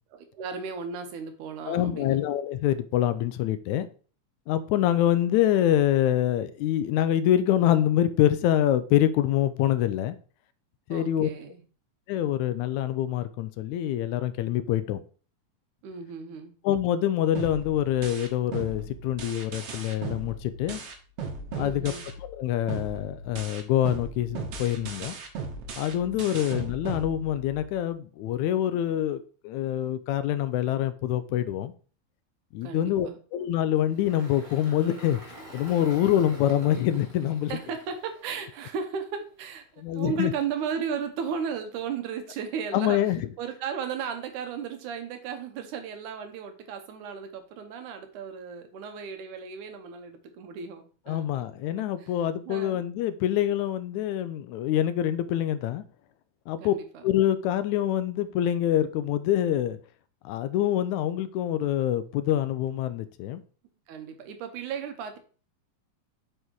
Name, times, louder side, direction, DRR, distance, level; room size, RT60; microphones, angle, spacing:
voice 1, 0.1-2.2 10.9-11.6 15.8-16.5 21.6-22.1 26.3-26.5 32.6-33.2 37.5-52.1 52.5-52.8 56.6-57.0 63.9-65.2, right 6 dB, 80° right, 2.6 m, -35 dB
voice 2, 1.7-3.9 4.5-10.2 10.9-11.3 12.1-15.0 16.6-20.8 21.6-21.9 22.2-25.2 25.8-31.7 32.5-35.2 35.5-37.5 39.8-40.3 42.7-43.2 51.1-55.8 56.5-56.7 57.0-59.8 60.3-63.4, left 11 dB, 80° left, 1.9 m, -25 dB
sound 1, 17.4-22.4 22.7-27.7, right 4 dB, 60° right, 2.1 m, -37 dB
Engine, 33.8-39.0, right 1 dB, 15° right, 1.5 m, -46 dB
7.9 x 4.9 x 4.6 m
omnidirectional pair, 3.5 m